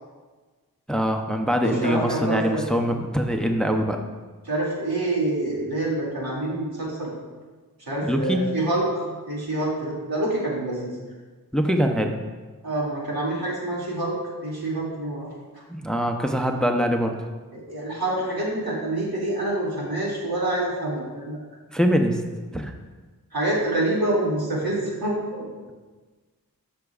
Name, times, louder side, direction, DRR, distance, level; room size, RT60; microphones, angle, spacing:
voice 1, 0.9-4.0 8.0-8.5 11.5-12.2 15.7-17.1 21.7-22.2 22.5-22.7, equal, ahead, 4 dB, 0.6 m, -23 dB
voice 2, 1.6-2.6 4.4-7.1 7.9-10.9 12.6-14.2 14.4-15.3 17.5-21.4 23.3-25.4, right 1 dB, 90° right, -6 dB, 2.4 m, -26 dB
13.0 x 5.9 x 2.4 m, 1.3 s
wide cardioid pair, 70°, 36 cm